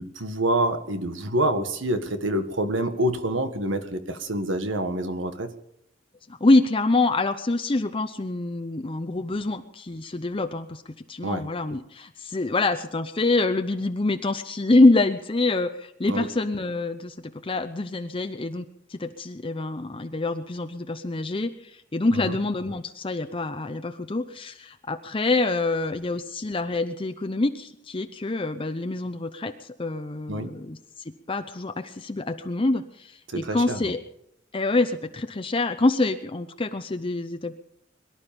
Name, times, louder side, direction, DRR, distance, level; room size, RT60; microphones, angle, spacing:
voice 1, 0.0-5.5 11.2-11.4 16.1-16.3 22.1-22.4 30.3-30.5 33.3-33.9, right 1 dB, 90° right, 8 dB, 1.7 m, -27 dB
voice 2, 6.4-10.8 11.1-17.2 17.4-18.6 18.9-30.8 31.3-34.0 34.5-37.5, left 2 dB, 30° left, 7 dB, 0.7 m, -25 dB
23.0 x 12.0 x 5.3 m, 0.77 s
head